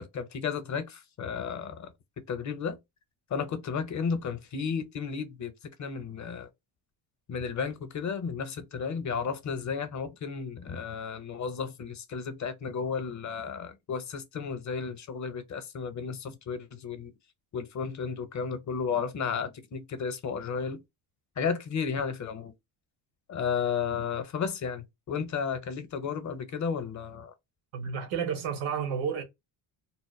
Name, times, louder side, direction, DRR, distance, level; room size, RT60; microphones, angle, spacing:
voice 1, 0.0-2.8 3.3-6.5 7.3-17.1 17.5-20.8 21.4-22.5 23.3-27.3, left 6 dB, 35° left, 0.6 m, -33 dB
voice 2, 27.7-29.2, right 7 dB, 85° right, 0.9 m, -31 dB
2.1 x 2.0 x 3.0 m
cardioid pair, 75°, 49 cm